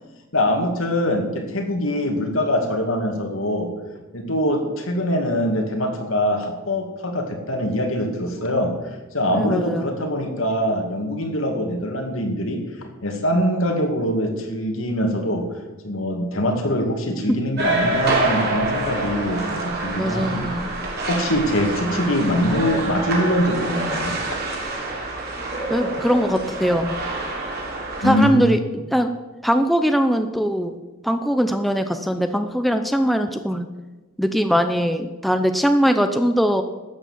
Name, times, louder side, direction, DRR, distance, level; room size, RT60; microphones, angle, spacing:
voice 1, 0.3-3.7 4.1-8.8 9.1-15.5 15.8-20.4 21.0-24.2 28.0-28.5, equal, 65° left, 4 dB, 2.3 m, -23 dB
voice 2, 9.3-9.9 17.3-17.4 20.0-20.7 25.7-27.0 28.0-28.6 28.9-29.1 29.4-30.7 31.0-33.7 34.2-36.6, equal, ahead, 7 dB, 0.6 m, -21 dB
sound 1, 17.6-28.3, right 2 dB, 50° right, 3.6 m, -26 dB
13.0 x 8.8 x 7.4 m, 1.2 s
head